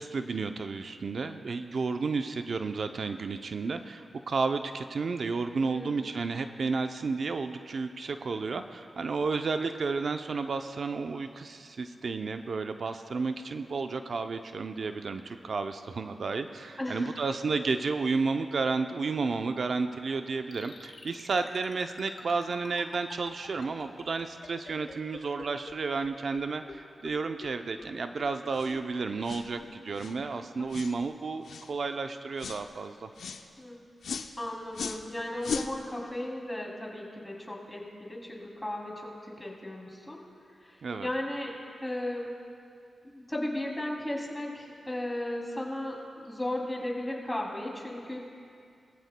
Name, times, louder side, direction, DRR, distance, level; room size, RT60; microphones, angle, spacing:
voice 1, 0.0-33.1 40.8-41.1, right 4 dB, 65° right, 7 dB, 0.5 m, -32 dB
voice 2, 5.6-6.1 16.8-17.1 33.6-33.8 34.4-40.2 40.6-42.3 43.0-48.2, left 1 dB, 15° left, -2 dB, 2.8 m, -36 dB
sound 1, 20.5-25.7 26.0-26.1 26.3-26.4 26.7-26.8 27.0-27.1 27.4-27.5 27.8-27.9 28.2-28.3 28.7-28.8 29.1-29.2 29.6-29.7 30.1-30.2 30.6-30.7, left 4 dB, 60° left, 1.6 m, -45 dB
sound 2, 28.5-28.7 29.2-29.5 29.9-30.2 30.7-31.0 31.4-31.7 32.4-32.6 33.2-33.4 34.0-34.3 34.7-35.0 35.4-35.7, left 6 dB, 85° left, 0.6 m, -37 dB
21.5 x 14.5 x 2.2 m, 2.4 s
cardioid pair, 65°, 0 cm